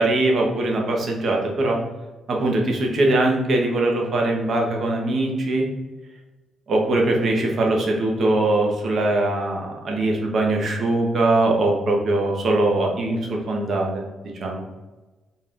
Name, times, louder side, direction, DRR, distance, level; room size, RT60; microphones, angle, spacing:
voice 1, 0.0-1.8 2.3-5.6 6.7-14.0 14.4-14.6, right 2 dB, 55° right, 0 dB, 0.8 m, -21 dB
4.1 x 2.5 x 3.5 m, 1.2 s
cardioid pair, 95°, 0 cm